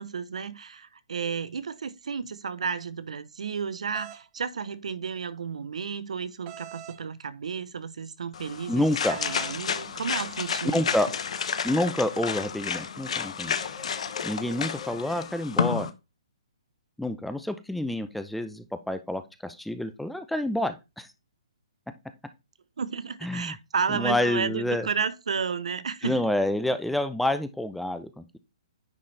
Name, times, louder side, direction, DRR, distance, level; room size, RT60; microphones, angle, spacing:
voice 1, 0.0-8.8 9.1-10.9 22.8-26.3, right 6 dB, 75° right, 0.7 m, -32 dB
sound 1, 3.9-4.2 6.5-7.0 9.0-9.6, right 11 dB, 30° right, 0.8 m, -43 dB
sound 2, 8.3-15.9, left 7 dB, 70° left, 0.9 m, -31 dB
voice 2, 8.7-9.2 10.7-11.1 11.6-13.5 14.2-15.9 17.0-21.1 23.2-23.5 23.9-24.9 26.0-28.4, left 1 dB, ahead, 0.5 m, -28 dB
sound 3, 9.2-15.3, left 6 dB, 30° left, 3.3 m, -49 dB
9.6 x 4.2 x 3.3 m
hypercardioid pair, 145°, 4 cm